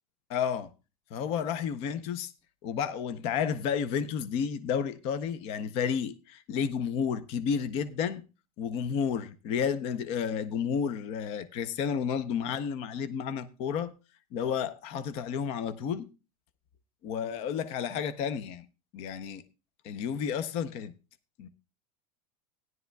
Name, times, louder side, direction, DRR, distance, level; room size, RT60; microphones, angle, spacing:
voice 1, 0.3-0.7 1.1-2.3 2.6-8.2 8.6-13.9 14.3-16.1 17.0-18.7 18.9-19.4 19.8-20.9 21.4-21.5, left 7 dB, 30° left, 0.6 m, -31 dB
16.0 x 11.0 x 2.2 m
supercardioid pair, 175°, 19 cm